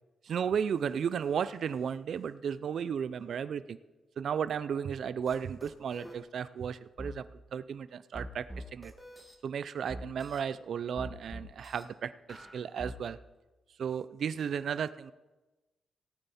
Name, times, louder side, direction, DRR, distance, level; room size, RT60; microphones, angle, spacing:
voice 1, 0.2-3.8 4.2-7.2 7.5-8.4 8.7-8.9 9.4-13.2 13.8-15.1, right 7 dB, 65° right, 15 dB, 0.4 m, -34 dB
sound 1, 5.3-5.4 5.6-6.2 7.0-7.1 8.1-9.3 9.9-10.4 11.0-11.8 12.3-13.0, equal, 5° left, 1.7 m, -43 dB
17.5 x 9.0 x 4.2 m, 1.1 s
cardioid pair, 105°, 0 cm